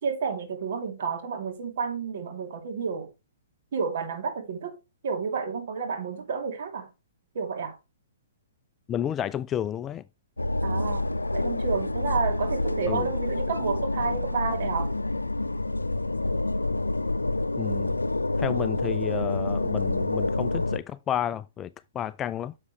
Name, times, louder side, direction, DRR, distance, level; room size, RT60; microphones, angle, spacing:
voice 1, 0.0-3.1 3.7-4.8 5.0-6.9 7.3-7.7 10.6-11.1 11.3-14.9, right 5 dB, 55° right, 2.7 m, -30 dB
voice 2, 8.9-10.0 12.9-13.1 17.6-18.0 18.4-21.7 21.9-22.5, left 10 dB, 20° left, 0.3 m, -31 dB
sound 1, 10.4-20.8, left 2 dB, 90° left, 0.5 m, -28 dB
9.6 x 6.7 x 3.1 m
figure-of-eight pair, 120°, 0 cm